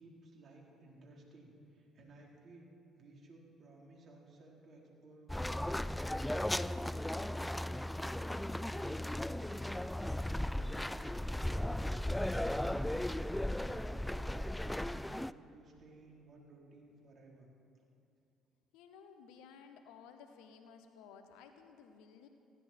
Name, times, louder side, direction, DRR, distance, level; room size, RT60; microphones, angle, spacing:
voice 1, 0.0-2.7 3.0-5.9 6.2-17.5, right 2 dB, 55° right, -2 dB, 4.2 m, -58 dB
sound 1, 5.3-15.3, left 1 dB, 5° left, 0.5 m, -36 dB
voice 2, 18.7-22.3, left 6 dB, 80° left, 7 dB, 1.3 m, -56 dB
19.5 x 16.0 x 4.6 m, 2.6 s
hypercardioid pair, 60°, 0 cm